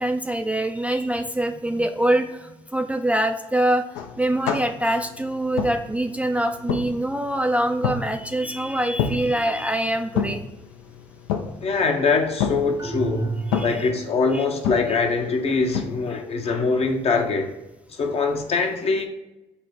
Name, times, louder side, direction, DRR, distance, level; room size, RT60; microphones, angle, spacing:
voice 1, 0.0-3.8 4.2-10.4 13.5-13.9 14.3-14.5 14.9-15.0, right 1 dB, 10° right, 0.3 m, -24 dB
sound 1, 3.9-15.9, left 7 dB, 80° left, 0.4 m, -31 dB
voice 2, 11.6-13.3 13.6-17.5 17.9-19.1, left 4 dB, 50° left, 0.7 m, -23 dB
sound 2, 12.8-14.3, right 3 dB, 30° right, 0.7 m, -30 dB
4.0 x 2.1 x 4.2 m
hypercardioid pair, 55°, 14 cm